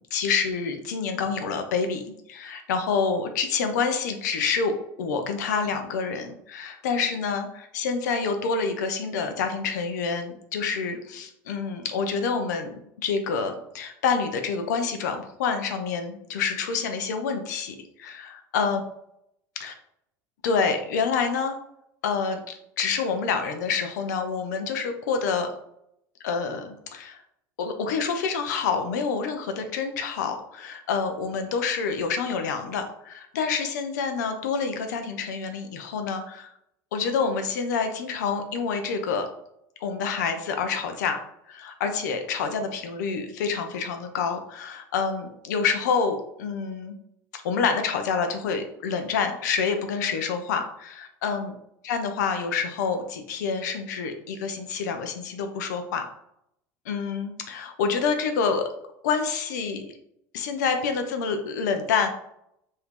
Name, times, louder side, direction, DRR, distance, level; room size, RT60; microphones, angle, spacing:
voice 1, 0.1-2.0 2.3-18.8 19.6-19.7 20.4-21.6 22.0-25.5 26.2-27.2 27.6-36.5 36.9-39.3 39.8-41.2 41.5-46.9 47.3-51.5 51.8-56.0 56.9-58.7 59.0-59.9 60.3-62.1, left 5 dB, 90° left, 6 dB, 0.6 m, -27 dB
2.8 x 2.7 x 3.5 m, 0.76 s
supercardioid pair, 110°, 9 cm